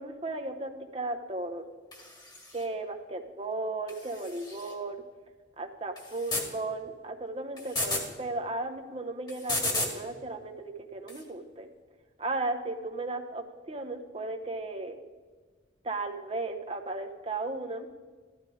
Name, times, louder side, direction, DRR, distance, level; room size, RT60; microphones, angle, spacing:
voice 1, 0.0-1.7 2.5-5.0 5.6-11.7 12.2-15.0 15.8-17.9, right 2 dB, 30° right, 4 dB, 0.8 m, -35 dB
sound 1, 1.9-2.6 3.9-4.7 6.0-6.5 7.6-8.1 9.3-10.0 11.1-11.2, left 2 dB, 20° left, 1.8 m, -33 dB
14.5 x 12.5 x 4.9 m, 1.4 s
head